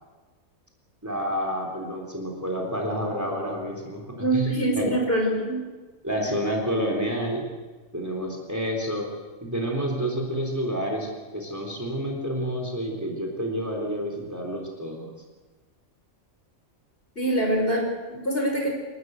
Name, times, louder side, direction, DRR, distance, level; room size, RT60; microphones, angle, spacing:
voice 1, 1.0-4.0 4.3-4.9 6.0-7.4 7.9-9.1 9.4-15.1, equal, 10° right, 1 dB, 3.7 m, -29 dB
voice 2, 4.2-5.6 17.2-18.7, right 1 dB, 45° left, 1 dB, 5.7 m, -24 dB
28.5 x 13.5 x 8.1 m, 1.3 s
omnidirectional pair, 1.4 m